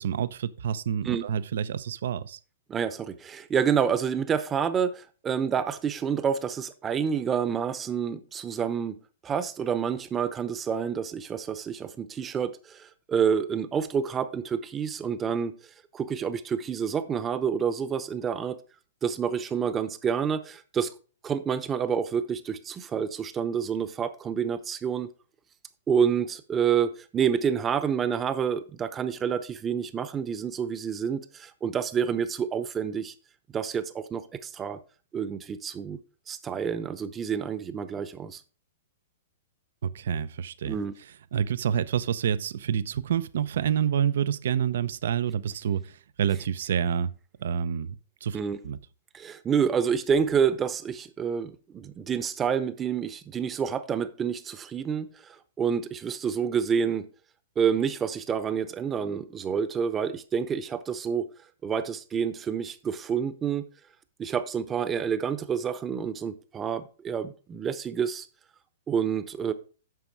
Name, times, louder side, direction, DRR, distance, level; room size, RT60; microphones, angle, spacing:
voice 1, 0.0-2.4 39.8-40.8 41.3-47.1 47.4-48.4 48.6-48.8, right 8 dB, 70° right, 0.6 m, -28 dB
voice 2, 2.7-15.6 15.9-18.6 19.0-20.9 21.2-25.1 25.9-33.1 33.5-34.8 35.1-36.0 36.3-38.4 40.7-40.9 48.3-48.6 49.1-55.1 55.6-57.1 57.6-61.3 61.6-63.7 64.2-68.3 68.9-69.5, right 7 dB, 20° right, 0.9 m, -28 dB
9.3 x 6.1 x 4.6 m
hypercardioid pair, 145°, 0 cm